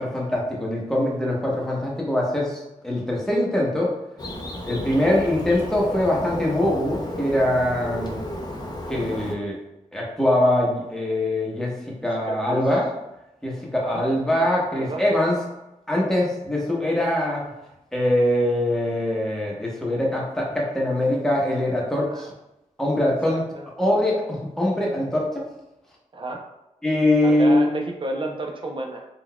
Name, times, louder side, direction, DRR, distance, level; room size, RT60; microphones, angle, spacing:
voice 1, 0.0-3.9 4.6-8.2 8.9-9.6 9.9-12.9 13.4-15.3 15.9-17.5 17.9-22.3 22.8-23.5 23.8-25.4 26.8-27.7, left 1 dB, 5° left, -4 dB, 1.0 m, -23 dB
Bird, 4.2-9.4, left 1 dB, 30° left, 0.6 m, -33 dB
voice 2, 12.3-12.6 13.8-14.0 14.7-15.3 22.1-22.2 23.3-23.7 26.1-26.4 27.2-29.1, right 2 dB, 40° right, 2 dB, 0.6 m, -31 dB
3.8 x 2.4 x 2.2 m, 0.92 s
cardioid pair, 60°, 14 cm